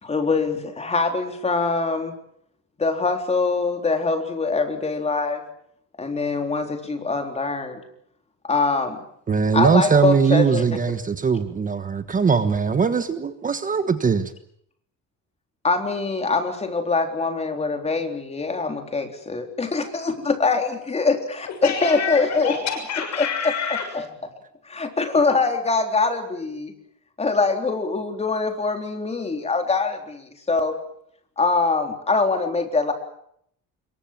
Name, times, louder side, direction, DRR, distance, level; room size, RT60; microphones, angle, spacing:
voice 1, 0.0-2.1 2.8-5.4 6.0-7.8 8.4-9.0 9.5-10.6 15.6-22.5 24.7-26.7 27.2-30.8 31.4-32.9, left 3 dB, 20° left, 5 dB, 3.8 m, -23 dB
voice 2, 9.3-14.3, right 5 dB, 25° right, 10 dB, 1.3 m, -20 dB
voice 3, 21.5-23.9, left 7 dB, 55° left, 6 dB, 6.5 m, -28 dB
27.0 x 23.0 x 7.5 m, 0.70 s
cardioid pair, 160°, 33 cm